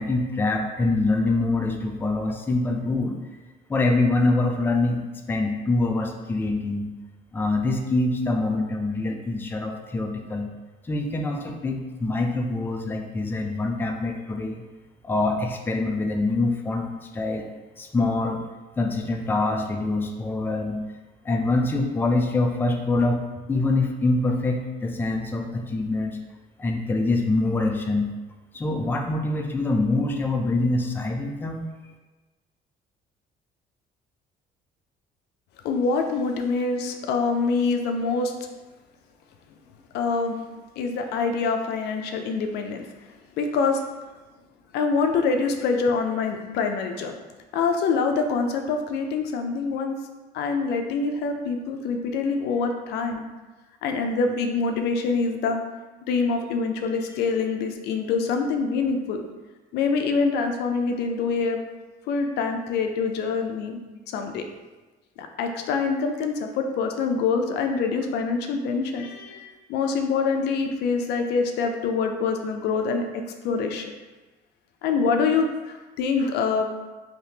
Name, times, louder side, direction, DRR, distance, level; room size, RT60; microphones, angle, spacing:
voice 1, 0.0-3.2 3.7-6.9 7.3-10.5 10.8-14.6 15.0-17.5 17.8-18.4 18.8-20.8 21.2-23.2 23.5-26.2 26.6-28.1 28.5-31.7, left 2 dB, 10° left, 2 dB, 0.3 m, -25 dB
voice 2, 35.6-38.3 39.9-40.4 40.8-42.9 43.4-43.8 44.7-47.2 47.5-50.0 50.3-53.2 53.8-55.6 56.1-59.2 59.7-61.6 62.1-63.8 64.1-64.4 65.2-73.9 74.8-76.7, left 4 dB, 80° left, 5 dB, 0.4 m, -25 dB
3.4 x 2.8 x 2.8 m, 1.2 s
cardioid pair, 110°, 17 cm